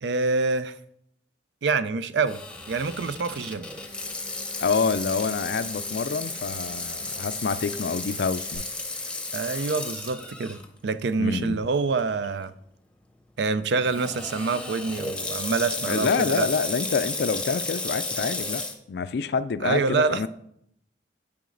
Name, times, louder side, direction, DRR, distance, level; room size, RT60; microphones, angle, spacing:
voice 1, 0.0-0.7 1.6-2.4 2.7-3.7 9.3-10.6 10.8-12.5 13.4-16.5 19.6-20.2, right 4 dB, 70° right, 0.4 m, -26 dB
Water tap faucet / Sink (filling or washing), 2.3-10.7 11.1-11.2 12.0-12.3 13.8-18.7, left 2 dB, 5° left, 0.8 m, -33 dB
sound 1, 2.6-8.6, left 1 dB, 40° right, 2.5 m, -50 dB
voice 2, 4.6-8.6 11.2-11.6 15.9-18.6 18.9-20.3, left 5 dB, 60° left, 0.4 m, -27 dB
9.3 x 4.8 x 3.9 m
head